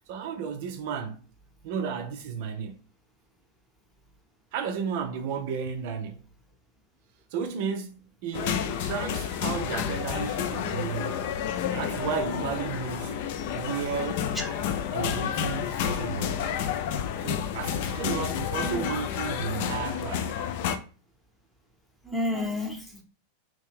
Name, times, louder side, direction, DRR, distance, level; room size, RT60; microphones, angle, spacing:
voice 1, 0.1-1.2 1.6-2.8 4.5-6.3 7.3-11.4 11.7-14.3 14.9-16.4 17.2-20.3, right 6 dB, 50° right, 0.4 m, -33 dB
sound 1, 8.3-20.8, left 8 dB, 50° left, 0.4 m, -30 dB
voice 2, 14.3-14.7 18.6-18.9 22.0-23.0, left 1 dB, 5° left, 0.9 m, -31 dB
2.9 x 2.6 x 3.4 m
figure-of-eight pair, 90°, 0 cm